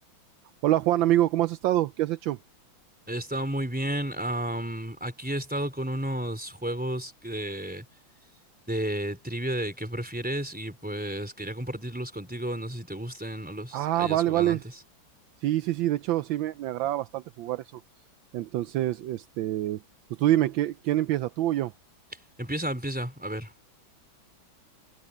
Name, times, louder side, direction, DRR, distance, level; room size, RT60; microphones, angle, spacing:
voice 1, 0.6-2.4 13.7-14.6 15.4-17.8 18.3-19.8 20.2-21.7, right 14 dB, 80° right, 1.3 m, -26 dB
voice 2, 3.1-7.9 8.7-14.8 22.1-23.5, right 1 dB, 5° right, 3.5 m, -32 dB
omnidirectional pair, 2.2 m